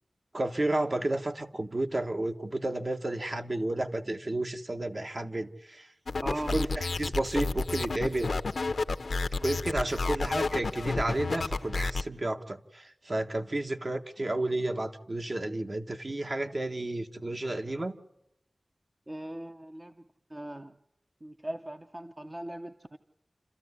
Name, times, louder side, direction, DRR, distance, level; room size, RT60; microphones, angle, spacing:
voice 1, 0.3-5.9 6.3-8.3 9.4-17.9, right 1 dB, 45° right, 6 dB, 1.4 m, -32 dB
sound 1, 6.1-12.0, left 3 dB, 85° left, 0.8 m, -31 dB
voice 2, 6.2-6.5 19.1-19.9 20.3-20.7 21.2-23.0, right 1 dB, 30° right, 7 dB, 0.9 m, -39 dB
28.5 x 13.5 x 9.7 m, 0.83 s
wide cardioid pair, 75°, 0 cm